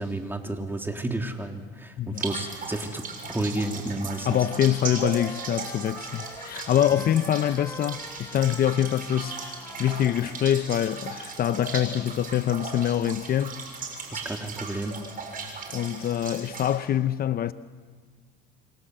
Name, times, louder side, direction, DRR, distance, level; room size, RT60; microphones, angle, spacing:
voice 1, 0.0-3.0 3.3-4.4 6.9-7.0 14.1-15.0, right 2 dB, 10° right, 3.3 m, -31 dB
sound 1, 2.2-16.8, right 4 dB, 45° right, 7.0 m, -37 dB
Trumpet, 4.1-11.2, left 2 dB, 15° left, 2.2 m, -45 dB
voice 2, 4.2-9.4 9.8-13.6 15.7-17.5, left 10 dB, 50° left, 0.9 m, -25 dB
28.5 x 25.0 x 8.0 m
supercardioid pair, 95°, 20 cm